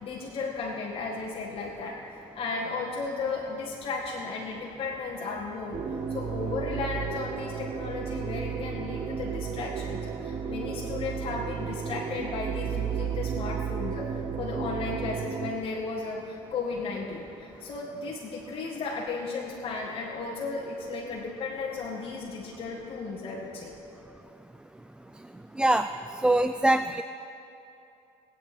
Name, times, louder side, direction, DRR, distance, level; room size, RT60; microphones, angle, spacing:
voice 1, 0.0-2.0 2.3-5.8 6.1-23.7, left 4 dB, 45° left, -4 dB, 1.8 m, -35 dB
sound 1, 5.7-15.5, right 7 dB, 40° right, 0.9 m, -33 dB
voice 2, 25.6-25.9 26.2-27.0, right 1 dB, 5° right, 9 dB, 0.3 m, -22 dB
22.0 x 8.8 x 4.4 m, 2.7 s
cardioid pair, 100°, 13 cm